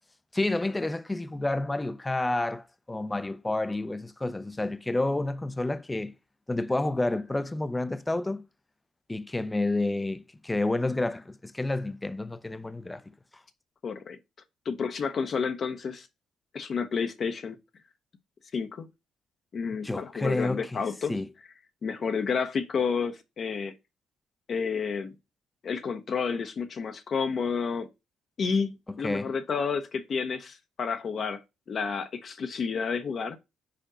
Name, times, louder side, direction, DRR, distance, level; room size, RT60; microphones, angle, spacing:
voice 1, 0.3-6.1 6.5-8.4 9.1-13.0 19.8-20.8 21.1-21.3 29.0-29.3, left 2 dB, 15° left, 0.6 m, -29 dB
voice 2, 13.8-14.2 14.6-16.1 16.5-17.6 18.5-18.9 19.5-21.1 21.8-23.7 24.5-25.1 25.6-27.9 28.4-31.4 31.7-33.4, left 5 dB, 50° left, 0.8 m, -30 dB
5.0 x 4.4 x 4.9 m
cardioid pair, 85°, 0 cm